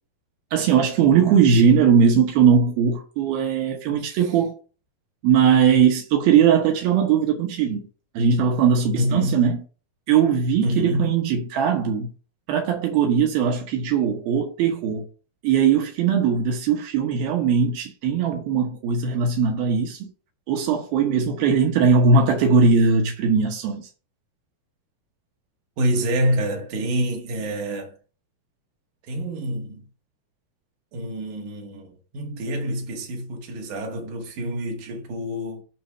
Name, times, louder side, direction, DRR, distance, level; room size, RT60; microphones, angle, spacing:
voice 1, 0.5-4.6 5.2-7.8 8.1-9.6 10.1-12.1 12.5-15.0 15.4-20.1 20.5-23.9, right 6 dB, 80° right, 2.9 m, -19 dB
voice 2, 9.0-9.5 10.6-11.2 25.8-28.0 29.1-29.9 30.9-35.6, right 1 dB, 60° right, 2.9 m, -27 dB
9.0 x 3.0 x 6.5 m
omnidirectional pair, 4.3 m